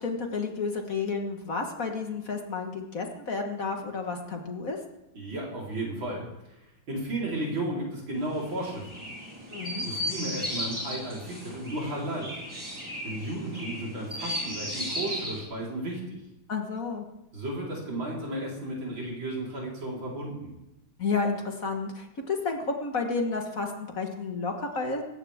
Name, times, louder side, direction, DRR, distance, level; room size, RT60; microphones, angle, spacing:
voice 1, 0.0-4.8 9.5-9.8 16.5-17.0 21.0-25.0, left 4 dB, 45° left, 3 dB, 1.8 m, -31 dB
voice 2, 5.1-6.2 6.9-9.0 9.8-12.3 13.0-16.0 17.3-20.5, right 1 dB, 75° right, -4 dB, 5.2 m, -33 dB
Chirp tweet, 8.2-15.4, equal, 10° right, 5.5 m, -35 dB
19.0 x 16.5 x 3.6 m, 0.91 s
omnidirectional pair, 2.1 m